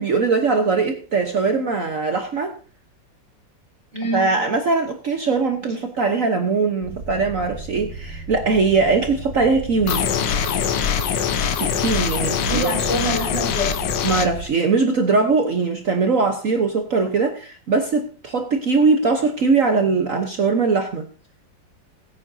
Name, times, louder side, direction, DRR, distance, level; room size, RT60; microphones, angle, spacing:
voice 1, 0.0-2.6 4.1-10.1 11.6-12.7 14.0-21.1, right 4 dB, 50° right, 5 dB, 1.3 m, -21 dB
voice 2, 3.9-4.5 12.4-13.9, right 1 dB, 40° left, -2 dB, 5.7 m, -26 dB
sound 1, 6.8-14.5, right 2 dB, 85° right, 3.5 m, -35 dB
sound 2, 9.9-14.3, left 8 dB, 75° left, 1.6 m, -23 dB
21.0 x 8.9 x 2.7 m, 0.37 s
omnidirectional pair, 2.0 m